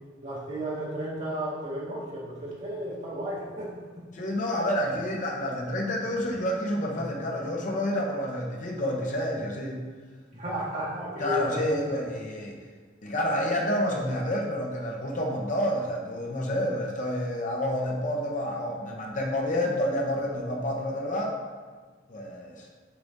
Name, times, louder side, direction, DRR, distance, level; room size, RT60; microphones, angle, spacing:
voice 1, 0.2-4.1 10.3-11.6, equal, 35° right, -7 dB, 2.2 m, -33 dB
voice 2, 4.1-9.8 11.2-12.6 13.0-21.4 22.1-22.7, left 1 dB, 40° left, -1 dB, 0.8 m, -29 dB
7.0 x 4.8 x 4.0 m, 1.5 s
head